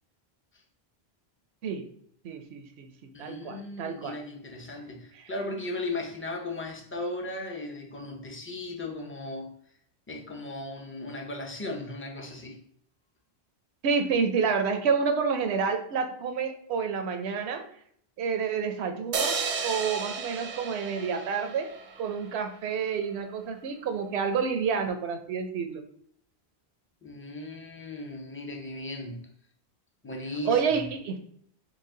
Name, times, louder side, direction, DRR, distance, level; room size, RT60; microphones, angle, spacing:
voice 1, 2.2-2.9 3.2-4.2 5.2-5.3 13.8-17.7 18.2-19.4 19.6-21.7 22.0-25.8 30.5-31.2, right 6 dB, 80° right, 6 dB, 0.9 m, -29 dB
voice 2, 3.1-9.6 10.1-12.6 27.0-29.3 30.0-30.6, left 2 dB, 15° left, 1 dB, 0.5 m, -37 dB
sound 1, 19.1-22.4, right 5 dB, 55° right, 0.6 m, -33 dB
4.9 x 2.2 x 3.7 m, 0.67 s
omnidirectional pair, 1.1 m